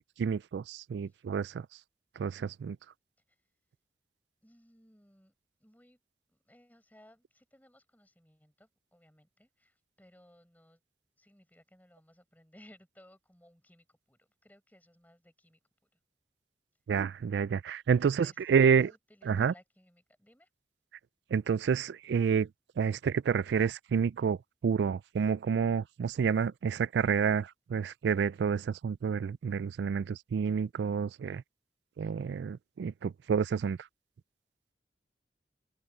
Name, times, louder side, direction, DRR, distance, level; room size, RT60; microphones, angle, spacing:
voice 1, 0.2-1.6 2.2-2.8 16.9-18.9 19.3-19.5 21.3-22.5 22.8-24.4 24.6-31.4 32.0-33.8, right 6 dB, 70° right, 0.3 m, -29 dB
voice 2, 4.4-5.3 5.6-6.0 6.3-10.8 11.2-15.9 17.9-20.5, left 1 dB, 10° left, 6.8 m, -61 dB
head